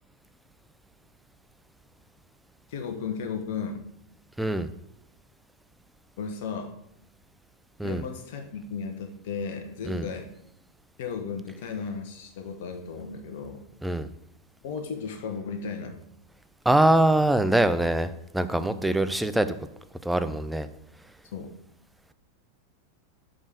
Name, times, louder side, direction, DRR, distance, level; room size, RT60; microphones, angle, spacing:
voice 1, 2.7-3.8 6.2-6.7 7.8-10.3 11.0-13.6 14.6-16.0 18.6-18.9 21.3-21.5, left 5 dB, 50° left, 4 dB, 1.3 m, -35 dB
voice 2, 4.4-4.7 7.8-8.0 9.9-10.1 13.8-14.1 16.7-19.5 20.0-20.7, right 1 dB, 5° right, 11 dB, 0.5 m, -23 dB
5.2 x 5.2 x 6.4 m, 0.81 s
figure-of-eight pair, 90°, 0 cm